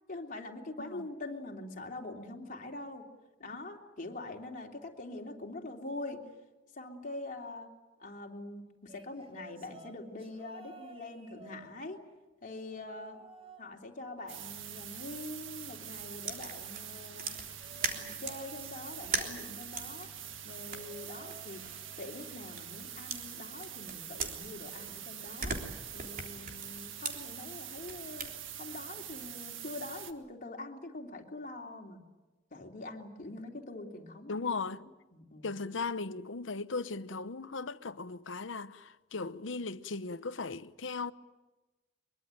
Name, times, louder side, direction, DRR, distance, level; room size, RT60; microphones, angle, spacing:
voice 1, 0.1-3.0 3.4-6.2 6.7-7.7 8.0-12.0 12.4-13.2 13.6-17.4 17.9-20.1 20.4-21.6 22.0-25.5 25.9-28.3 28.6-32.0 32.5-34.3 35.1-35.5, left 2 dB, 45° left, 3.3 m, -44 dB
sound 1, 8.9-12.2 12.7-13.7 14.0-15.5 17.6-19.8 20.7-22.2 22.5-22.9 24.0-24.1, right 2 dB, 30° right, 3.8 m, -55 dB
sound 2, 14.3-30.1, right 9 dB, 80° right, 1.7 m, -45 dB
sound 3, 16.2-18.5 19.0-22.8 23.1-24.9 25.2-28.3, right 5 dB, 45° right, 3.5 m, -40 dB
voice 2, 34.3-34.9 35.4-41.1, left 4 dB, 70° left, 0.9 m, -37 dB
23.0 x 23.0 x 9.1 m
head